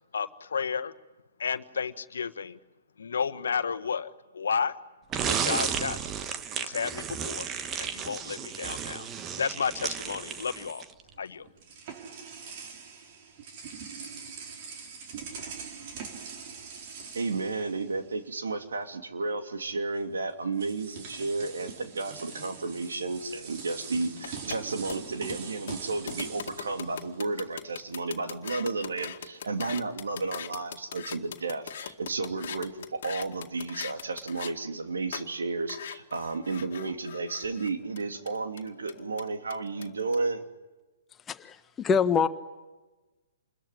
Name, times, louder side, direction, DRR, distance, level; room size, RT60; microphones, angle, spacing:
voice 1, 0.1-0.9 1.4-2.6 3.0-4.8 5.2-6.0 6.6-7.5 7.8-10.8 11.2-11.5, left 6 dB, 75° left, 11 dB, 1.4 m, -32 dB
sound 1, 5.1-11.0, right 7 dB, 25° right, 1.4 m, -33 dB
sound 2, 11.1-18.4 18.6-18.9 20.0-20.1 20.5-27.7, right 5 dB, 45° right, 4.1 m, -43 dB
voice 2, 17.1-40.4, right 3 dB, 75° right, 5 dB, 2.9 m, -32 dB
sound 3, 24.2-34.5 35.1-35.3 35.7-40.1, left 9 dB, 55° left, 2.0 m, -41 dB
voice 3, 41.3-42.3, left 6 dB, 15° left, 10 dB, 1.4 m, -25 dB
27.5 x 22.0 x 9.8 m, 1.2 s
hypercardioid pair, 130°, 0 cm